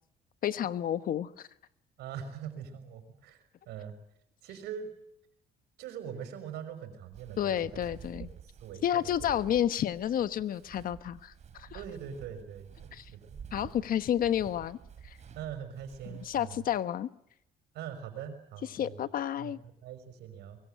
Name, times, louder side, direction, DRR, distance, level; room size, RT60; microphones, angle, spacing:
voice 1, 0.4-1.5 7.4-8.3 8.8-11.7 12.9-13.0 13.5-14.8 15.0-15.2 16.1-17.1 18.7-19.6, left 10 dB, 55° left, 1.2 m, -30 dB
voice 2, 2.0-4.0 4.4-4.9 5.8-7.8 8.2-9.3 11.7-13.9 15.4-16.6 17.7-19.0 19.4-20.6, right 8 dB, 80° right, 5.8 m, -43 dB
Walk footsteps, 7.1-16.8, right 7 dB, 45° right, 4.2 m, -50 dB
23.5 x 22.5 x 9.1 m
cardioid pair, 110°, 17 cm